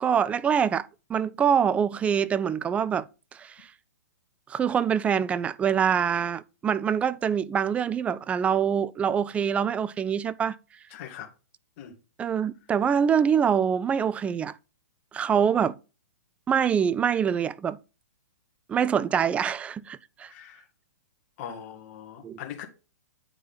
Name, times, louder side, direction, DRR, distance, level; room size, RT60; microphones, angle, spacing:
voice 1, 0.0-3.1 3.4-3.7 4.5-10.6 12.2-14.5 15.1-15.8 16.5-17.8 18.7-20.3 22.2-22.4, right 7 dB, 15° right, 0.3 m, -25 dB
voice 2, 10.9-11.3 11.8-11.9 20.3-20.6 21.4-22.7, left 9 dB, 45° left, 2.0 m, -40 dB
9.0 x 4.6 x 4.0 m
hypercardioid pair, 130°, 9 cm